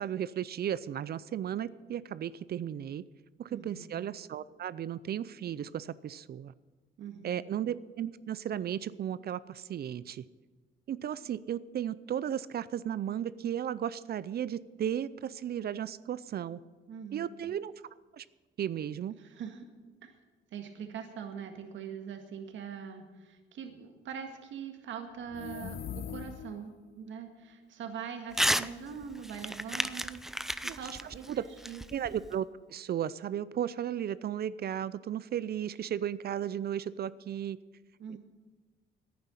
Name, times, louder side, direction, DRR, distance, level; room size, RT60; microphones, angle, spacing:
voice 1, 0.0-3.0 3.4-6.5 7.2-10.2 10.9-16.6 17.1-17.7 18.1-18.3 18.6-19.1 30.6-30.9 31.3-31.4 31.9-37.6 38.1-38.2, right 10 dB, 50° right, 18 dB, 0.5 m, -35 dB
voice 2, 3.5-3.9 7.0-7.5 16.9-17.5 19.2-19.6 20.0-20.2 20.5-31.8 38.0-38.2, right 7 dB, 75° right, 5 dB, 1.8 m, -43 dB
sound 1, 25.2-26.8, left 9 dB, 55° left, 0.6 m, -41 dB
Crumpling crinkling / Tearing, 28.3-28.7 29.0-32.3, equal, ahead, 0.5 m, -32 dB
11.0 x 9.6 x 9.0 m, 1.3 s
cardioid pair, 90°, 20 cm